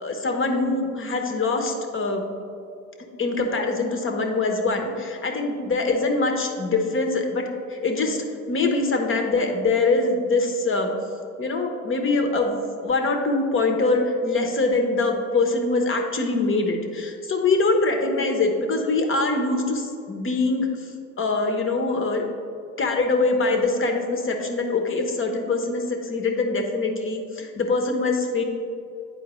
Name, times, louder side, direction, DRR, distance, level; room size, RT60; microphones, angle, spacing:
voice 1, 0.0-2.2 3.2-10.9 11.4-22.3 22.8-28.4, left 3 dB, 30° left, 3 dB, 1.0 m, -23 dB
9.8 x 4.3 x 3.1 m, 2.6 s
hypercardioid pair, 80°, 41 cm